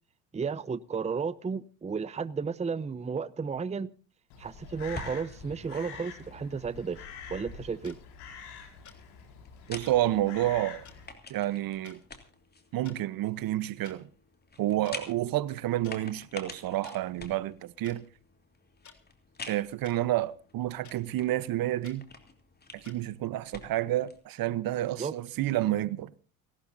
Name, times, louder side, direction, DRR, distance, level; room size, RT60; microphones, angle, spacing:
voice 1, 0.3-3.9 4.4-8.0 25.0-25.1, right 5 dB, 15° right, 0.7 m, -33 dB
Crow, 4.3-11.1, left 6 dB, 70° left, 5.2 m, -46 dB
sound 1, 4.7-24.2, left 3 dB, 25° left, 3.2 m, -49 dB
sound 2, 7.8-8.0 8.8-9.0 9.8-10.0 10.8-11.0 11.8-12.0 12.7-13.0 13.8-14.0 14.8-15.0 15.8-16.0 16.8-17.0 17.8-18.0 18.8-19.0 19.8-20.0 20.8-21.0 21.8-22.0 22.8-23.0, left 7 dB, 45° left, 3.4 m, -52 dB
voice 2, 9.7-10.8 11.3-12.0 12.7-14.1 14.6-18.0 19.5-22.0 22.7-26.1, right 14 dB, 55° right, 1.0 m, -29 dB
29.0 x 13.0 x 2.7 m
supercardioid pair, 75°, 42 cm